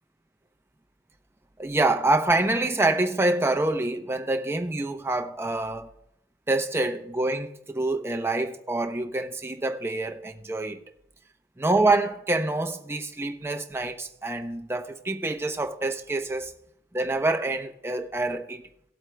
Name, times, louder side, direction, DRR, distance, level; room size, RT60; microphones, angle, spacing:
voice 1, 1.6-5.9 6.5-10.8 11.6-16.5 16.9-18.6, right 2 dB, 15° right, 0.7 m, -26 dB
18.5 x 7.8 x 2.2 m
head